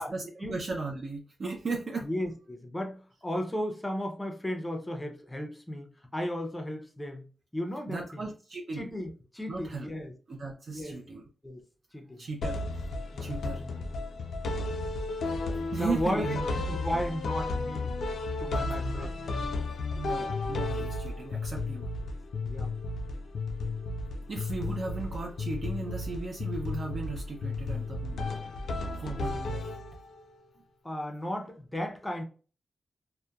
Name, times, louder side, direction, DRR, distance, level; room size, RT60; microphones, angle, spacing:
voice 1, 0.0-2.1 7.9-8.9 9.5-9.9 10.3-11.2 12.2-12.6 13.2-13.6 15.7-16.5 18.7-19.1 20.0-21.8 24.3-28.3 29.0-29.7, right 3 dB, 45° right, 0.4 m, -36 dB
voice 2, 2.0-5.9 6.1-7.3 7.5-8.2 8.7-10.1 10.7-11.0 11.4-11.6 11.9-12.2 13.1-13.7 15.8-17.9 18.4-19.2 22.4-22.7 30.8-32.2, equal, 10° left, 0.5 m, -35 dB
sound 1, 12.4-30.2, left 2 dB, 75° left, 0.4 m, -33 dB
2.8 x 2.1 x 2.2 m
wide cardioid pair, 145°, 0 cm